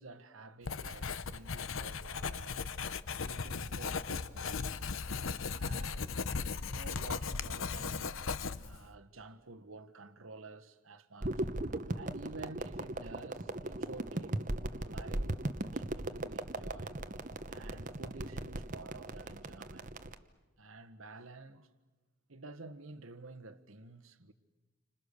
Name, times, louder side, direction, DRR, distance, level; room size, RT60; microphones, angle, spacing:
voice 1, 0.0-2.6 3.2-4.9 5.5-6.1 6.7-8.2 8.5-11.4 11.9-16.9 17.5-19.9 20.6-21.7 22.3-24.3, right 3 dB, 70° right, 1.4 m, -51 dB
Writing, 0.7-8.9, left 5 dB, 65° left, 0.8 m, -37 dB
sound 1, 11.2-20.1, right 1 dB, 35° right, 1.0 m, -38 dB
30.0 x 26.0 x 6.7 m
head